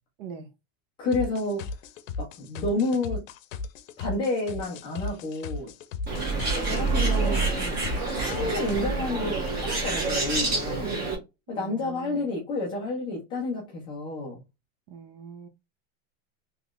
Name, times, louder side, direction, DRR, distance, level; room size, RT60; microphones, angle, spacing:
voice 1, 0.2-0.5 8.4-8.6 11.5-12.3 14.9-15.5, right 6 dB, 45° right, 0.7 m, -42 dB
voice 2, 1.0-1.8 2.2-3.2 4.0-5.7 6.6-7.8 8.1-10.9 11.5-14.4, left 2 dB, 15° left, 0.3 m, -30 dB
sound 1, 1.1-8.8, left 4 dB, 80° left, 0.7 m, -36 dB
Bird, 6.1-11.2, right 3 dB, 25° right, 1.2 m, -27 dB
3.7 x 3.0 x 2.3 m
supercardioid pair, 165°, 39 cm